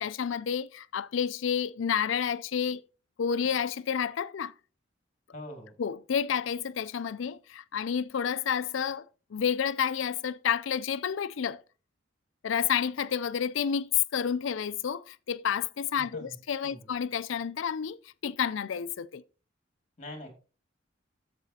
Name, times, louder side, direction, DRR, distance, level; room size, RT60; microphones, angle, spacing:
voice 1, 0.0-2.8 3.2-4.5 5.8-9.0 9.3-11.6 12.4-19.2, left 8 dB, 80° left, 0.4 m, -30 dB
voice 2, 5.3-5.7 16.0-16.3 16.6-16.9 20.0-20.3, left 1 dB, 35° left, 2.3 m, -43 dB
11.0 x 7.5 x 2.8 m
head